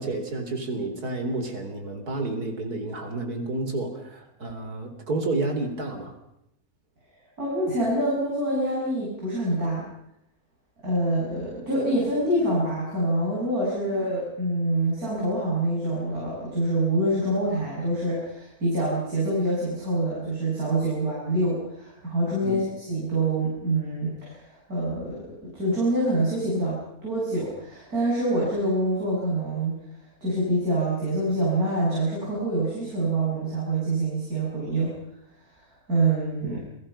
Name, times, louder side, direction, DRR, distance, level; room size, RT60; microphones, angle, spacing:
voice 1, 0.0-6.2 22.4-22.6 36.4-36.6, right 2 dB, 90° right, 6 dB, 4.3 m, -30 dB
voice 2, 7.4-9.9 10.8-29.8 30.2-34.9 35.9-36.6, right 1 dB, 75° right, -6 dB, 8.2 m, -26 dB
30.0 x 23.0 x 5.8 m, 0.79 s
omnidirectional pair, 1.6 m